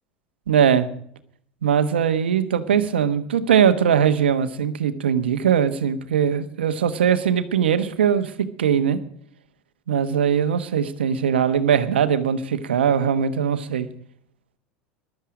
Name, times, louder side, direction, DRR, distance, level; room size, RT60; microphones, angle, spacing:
voice 1, 0.5-0.9 1.6-9.0 9.9-13.9, right 8 dB, 85° right, 11 dB, 1.2 m, -20 dB
15.0 x 12.0 x 5.0 m, 0.64 s
hypercardioid pair, 85°, 6 cm